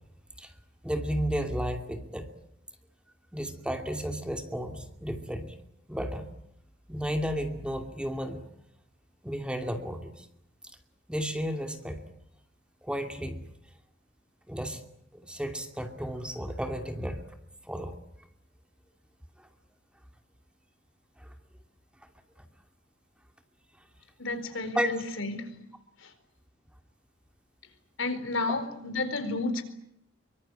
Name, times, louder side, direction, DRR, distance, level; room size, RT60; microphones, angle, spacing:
voice 1, 0.8-2.3 3.3-5.5 5.9-6.3 6.9-8.4 9.2-10.3 11.1-12.0 12.8-13.4 14.5-14.8 15.1-17.3 17.6-18.0 19.4-19.5 21.2-21.3 22.4-22.5 24.7-25.0, equal, 5° right, 2.6 m, -33 dB
voice 2, 24.2-25.5 26.0-26.1 28.0-29.6, left 3 dB, 70° left, 4.4 m, -31 dB
25.0 x 24.5 x 8.9 m
head